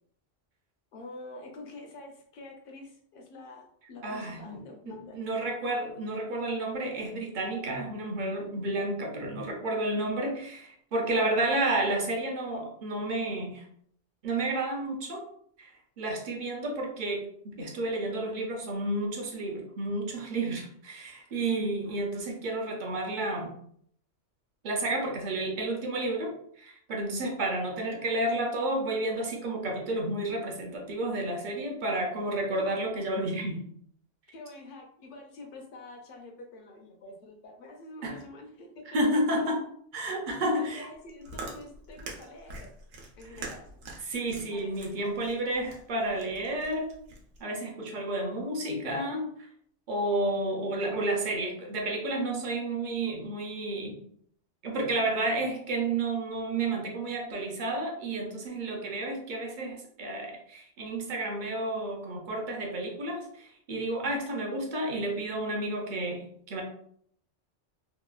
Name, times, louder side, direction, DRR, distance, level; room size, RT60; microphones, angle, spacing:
voice 1, 0.9-5.2 32.6-32.7 33.5-33.6 34.3-39.0 40.5-42.7 43.2-43.7 44.5-44.9, left 2 dB, 55° left, 2 dB, 0.7 m, -47 dB
voice 2, 4.0-4.6 4.9-13.6 14.2-15.2 15.6-23.5 24.6-33.6 38.0-38.2 38.9-39.6 39.9-40.9 44.0-46.9 47.4-49.3 49.9-54.0 54.6-66.6, right 2 dB, 55° right, 1 dB, 0.5 m, -31 dB
Chewing mastication, 40.9-47.4, right 2 dB, 90° right, 1.0 m, -44 dB
2.8 x 2.1 x 2.3 m, 0.64 s
omnidirectional pair, 1.3 m